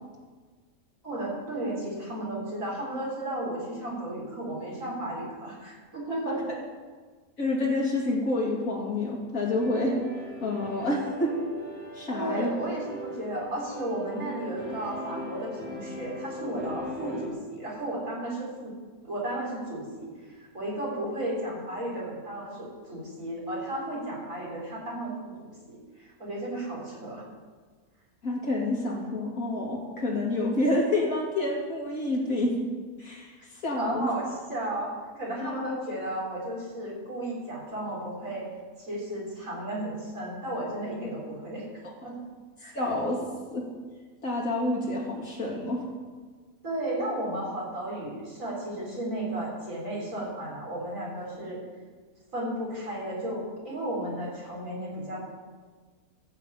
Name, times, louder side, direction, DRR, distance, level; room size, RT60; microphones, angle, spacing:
voice 1, 1.0-6.4 12.1-18.7 19.0-27.2 33.8-38.5 38.8-42.2 42.6-42.8 46.6-51.6 52.3-55.2, right 1 dB, 60° right, -4 dB, 4.6 m, -34 dB
voice 2, 7.4-10.0 10.4-11.4 11.9-12.5 28.2-32.6 33.0-34.1 35.4-35.7 42.7-43.2 43.5-43.6 44.2-45.9, left 2 dB, 65° left, -3 dB, 3.2 m, -28 dB
sound 1, 9.5-17.3, equal, 40° right, 3.4 m, -40 dB
15.0 x 6.0 x 8.4 m, 1.5 s
omnidirectional pair, 1.6 m